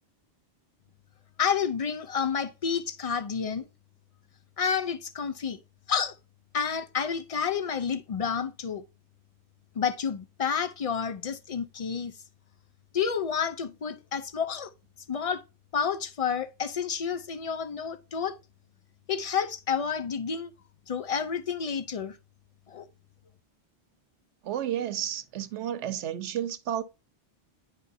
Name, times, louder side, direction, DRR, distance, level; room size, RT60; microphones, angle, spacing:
voice 1, 1.4-3.7 4.6-5.6 5.9-6.1 6.5-8.8 9.8-12.1 12.9-14.7 15.1-15.4 15.7-18.4 19.1-20.5 20.9-22.2 22.7-22.9, left 6 dB, 65° left, 0.3 m, -30 dB
voice 2, 24.4-26.8, right 10 dB, 90° right, 1.0 m, -31 dB
9.7 x 5.0 x 2.6 m
omnidirectional pair, 1.2 m